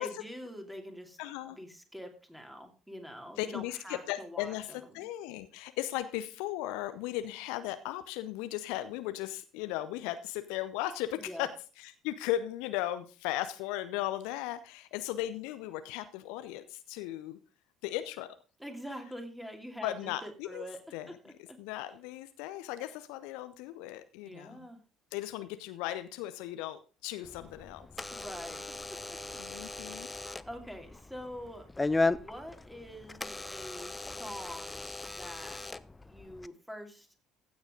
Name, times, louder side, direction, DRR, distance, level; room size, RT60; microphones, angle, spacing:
voice 1, 0.0-1.2 1.5-5.0 11.2-11.5 18.6-20.8 21.1-21.6 24.2-24.8 28.1-29.4 29.8-30.1 30.4-31.7 32.0-35.6 36.1-37.1, equal, 5° right, 4 dB, 2.9 m, -45 dB
voice 2, 1.2-1.6 3.4-11.5 11.8-17.4 17.8-18.3 19.8-20.6 20.9-21.1 21.6-24.7 25.1-27.9 29.4-30.1, left 14 dB, 65° left, 12 dB, 0.6 m, -37 dB
Door / Alarm, 27.2-36.5, left 3 dB, 15° left, 0.5 m, -37 dB
15.5 x 7.2 x 3.8 m, 0.34 s
figure-of-eight pair, 55°, 0 cm